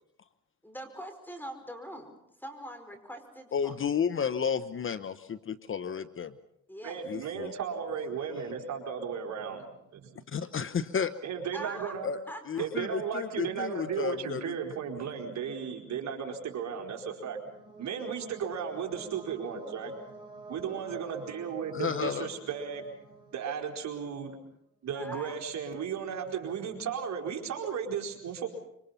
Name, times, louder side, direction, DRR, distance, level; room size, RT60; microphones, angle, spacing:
voice 1, 0.6-2.1 2.4-3.7 6.7-7.0 11.5-12.0 12.3-12.7 19.6-19.8 24.9-25.4, equal, 5° left, 7 dB, 5.1 m, -43 dB
voice 2, 3.5-6.3 7.0-7.5 10.3-11.1 12.0-12.2 12.5-14.5 21.7-22.3, left 7 dB, 45° left, 14 dB, 1.0 m, -32 dB
voice 3, 6.8-10.2 11.2-12.1 12.6-17.4 17.8-22.9 23.3-24.4 24.8-28.5, right 7 dB, 65° right, 2 dB, 4.4 m, -35 dB
sound 1, 16.6-24.2, right 2 dB, 15° right, 7.6 m, -51 dB
26.0 x 24.5 x 5.7 m, 0.77 s
cardioid pair, 90°, 30 cm